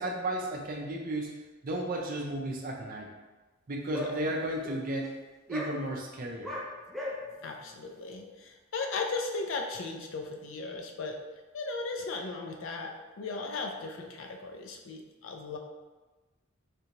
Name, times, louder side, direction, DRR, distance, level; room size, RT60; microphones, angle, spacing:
voice 1, 0.0-1.4 1.6-3.1 3.7-5.1 5.5-6.5, right 1 dB, 45° right, 0 dB, 0.5 m, -33 dB
sound 1, 3.9-4.1 4.6-4.7 5.0-5.1 5.5-5.7 6.4-6.6 6.9-7.1, left 1 dB, ahead, 0.5 m, -36 dB
voice 2, 7.4-11.2 11.5-15.6, left 3 dB, 70° left, 2 dB, 0.4 m, -36 dB
3.3 x 2.7 x 2.9 m, 1.2 s
head